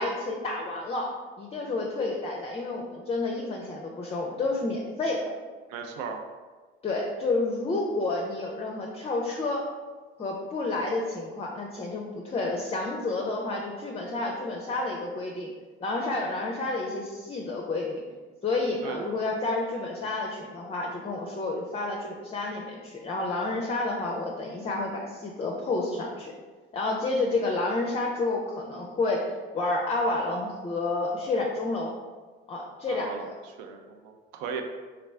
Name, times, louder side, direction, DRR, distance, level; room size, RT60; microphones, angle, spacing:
voice 1, 0.0-5.3 6.8-9.7 10.2-15.5 15.8-18.0 18.4-26.3 26.7-31.9 32.5-33.3, left 2 dB, 20° left, -1 dB, 0.5 m, -30 dB
voice 2, 5.7-6.2 18.8-19.1 32.9-33.3 33.6-34.6, right 6 dB, 70° right, 4 dB, 0.5 m, -36 dB
3.1 x 2.4 x 3.4 m, 1.4 s
hypercardioid pair, 60°, 29 cm